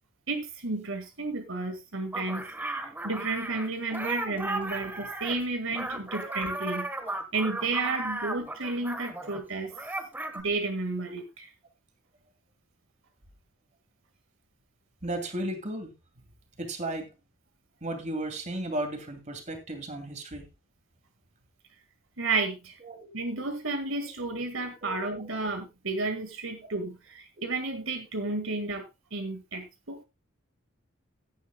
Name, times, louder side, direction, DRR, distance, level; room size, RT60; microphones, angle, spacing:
voice 1, 0.3-6.9 7.3-9.7 10.3-11.5 22.2-22.8 23.1-28.8 29.1-30.0, right 3 dB, 75° right, 1.9 m, -32 dB
sound 1, 2.1-9.4 9.7-10.4, right 2 dB, 10° right, 1.3 m, -35 dB
voice 2, 15.0-15.9 16.6-17.1 17.8-20.5 22.8-23.1 24.8-24.9, right 1 dB, 35° right, 2.6 m, -34 dB
16.0 x 10.0 x 2.3 m
head